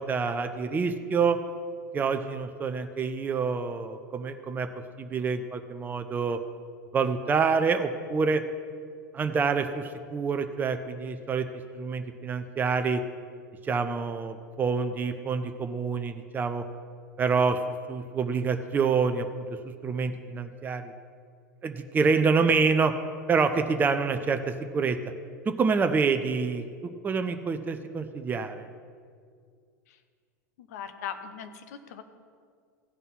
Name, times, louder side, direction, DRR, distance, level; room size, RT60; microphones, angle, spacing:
voice 1, 0.0-1.4 1.9-4.7 5.0-6.4 6.9-8.4 9.1-11.5 11.7-13.0 13.6-16.6 17.2-17.6 17.9-19.3 19.6-20.9 21.6-22.9 23.3-25.0 25.5-26.6 27.0-28.7, right 5 dB, 20° right, 7 dB, 0.6 m, -27 dB
voice 2, 30.6-32.0, left 8 dB, 60° left, 10 dB, 0.9 m, -39 dB
15.5 x 5.4 x 5.6 m, 2.1 s
figure-of-eight pair, 80°, 10 cm